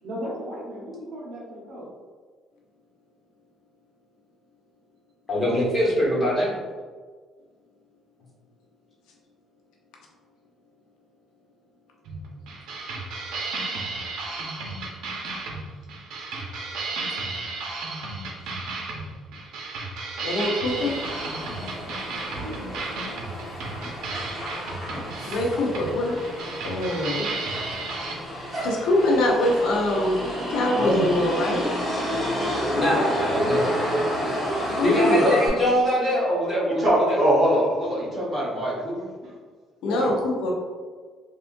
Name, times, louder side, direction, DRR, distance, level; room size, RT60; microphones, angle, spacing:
voice 1, 0.0-1.9 22.2-23.3 39.2-39.4, equal, 55° right, -4 dB, 1.0 m, -37 dB
voice 2, 5.3-6.5 30.8-31.0 31.9-32.0 32.7-33.7 34.8-37.2 39.8-40.1, equal, 25° left, -6 dB, 1.2 m, -23 dB
sound 1, 12.1-28.2, right 3 dB, 85° right, 0.6 m, -34 dB
voice 3, 20.2-21.0 25.3-26.2 26.6-27.3 28.6-31.7 34.7-35.3 39.8-40.5, left 1 dB, 85° left, -1 dB, 0.6 m, -23 dB
Motor vehicle (road), 20.6-35.5, equal, 5° right, 1.0 m, -30 dB
voice 4, 36.8-39.1, right 1 dB, 30° right, -7 dB, 1.2 m, -22 dB
3.6 x 2.4 x 2.5 m, 1.5 s
cardioid pair, 140°, 0 cm